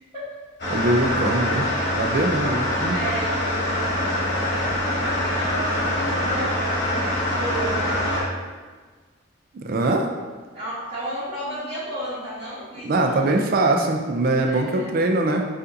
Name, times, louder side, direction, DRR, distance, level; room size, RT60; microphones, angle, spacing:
sound 1, 0.6-8.2, left 1 dB, 60° left, 1.3 m, -24 dB
voice 1, 0.7-1.7 1.9-3.0 9.6-10.1 12.8-15.4, right 2 dB, 45° right, 3 dB, 0.4 m, -22 dB
voice 2, 2.9-6.5 7.4-8.2 10.5-13.3 14.4-14.9, right 1 dB, 30° right, -11 dB, 1.0 m, -33 dB
6.7 x 2.5 x 2.6 m, 1.4 s
head